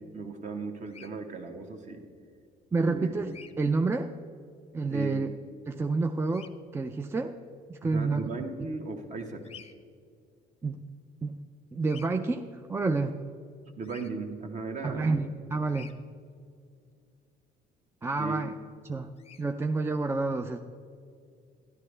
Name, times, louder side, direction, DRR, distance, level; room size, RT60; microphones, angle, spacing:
voice 1, 0.0-2.1 2.8-3.1 4.9-5.1 7.8-9.4 13.8-15.2 18.2-18.4, right 4 dB, 45° right, 4 dB, 1.2 m, -37 dB
Bird vocalization bird call bird song, 0.9-1.1 3.3-3.5 6.3-6.5 9.4-9.7 11.8-12.1 13.8-14.1 15.7-15.9 19.2-19.4, left 7 dB, 35° left, 0.6 m, -49 dB
voice 2, 2.7-4.1 4.7-5.3 5.7-7.3 7.7-8.3 10.6-10.8 11.2-11.4 11.7-13.2 14.8-15.9 18.0-18.5 18.9-19.1 19.4-20.6, right 3 dB, 15° right, 6 dB, 0.4 m, -29 dB
12.0 x 11.0 x 3.3 m, 2.3 s
cardioid pair, 110°, 17 cm